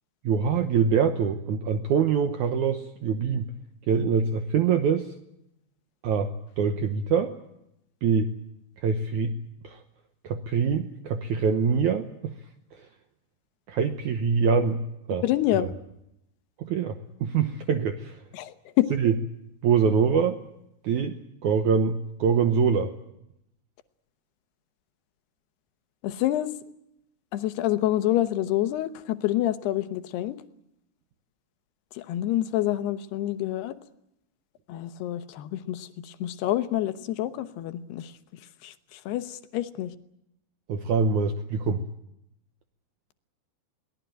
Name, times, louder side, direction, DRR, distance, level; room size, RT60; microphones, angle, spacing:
voice 1, 0.2-3.5 3.9-5.1 6.0-7.4 8.0-8.3 8.8-9.3 9.6-9.8 10.2-12.3 13.7-14.8 15.1-15.2 16.6-18.2 19.0-19.1 19.6-20.4 20.8-22.9 40.7-41.8, right 6 dB, 80° right, 8 dB, 1.7 m, -24 dB
voice 2, 15.2-15.7 18.3-18.9 26.0-26.5 27.3-30.4 31.9-33.7 34.7-38.1 38.6-39.9, left 14 dB, 75° left, 11 dB, 3.0 m, -27 dB
22.5 x 18.5 x 9.2 m, 0.82 s
omnidirectional pair, 4.9 m